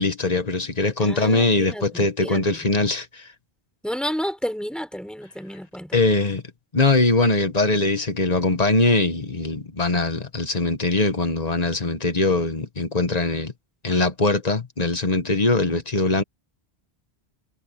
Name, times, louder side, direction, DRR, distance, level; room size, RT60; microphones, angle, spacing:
voice 1, 0.0-3.3 5.9-6.4 6.7-13.5 13.8-16.2, left 3 dB, 40° left, 1.6 m, -21 dB
voice 2, 1.0-2.6 3.8-6.0 15.7-15.8, equal, ahead, 5.9 m, -31 dB
omnidirectional pair, 1.1 m